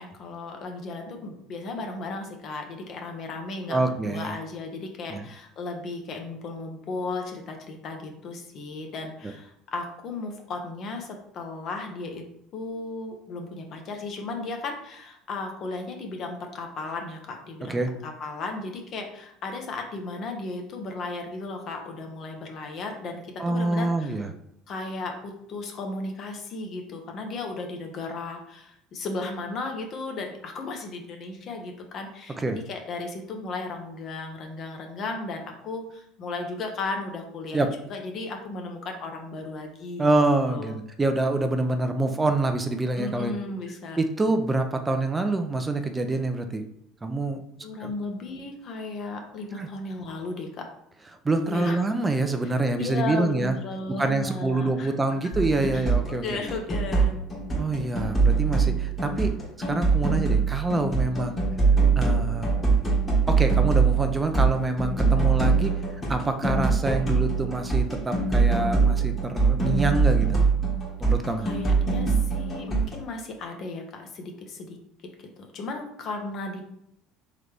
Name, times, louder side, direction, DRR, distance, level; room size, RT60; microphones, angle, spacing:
voice 1, 0.0-12.2 12.5-24.1 24.7-32.4 32.7-40.2 40.5-40.8 43.0-44.0 47.6-50.7 51.5-51.8 52.4-54.9 55.7-57.2 71.4-74.8 75.4-76.6, left 3 dB, 50° left, 3 dB, 0.9 m, -35 dB
voice 2, 3.7-4.3 5.1-5.3 17.6-17.9 23.4-24.3 32.4-32.6 37.5-37.7 40.0-43.4 44.0-46.6 47.0-47.4 47.8-47.9 49.6-49.7 51.2-53.5 53.9-56.4 57.6-59.3 59.7-61.4 62.0-62.5 63.3-65.8 66.1-70.4 71.0-71.5, right 2 dB, 20° right, 7 dB, 0.5 m, -26 dB
sound 1, 55.3-73.0, right 4 dB, 30° left, 1.5 m, -23 dB
3.8 x 3.2 x 3.4 m, 0.74 s
hypercardioid pair, 80°, 0 cm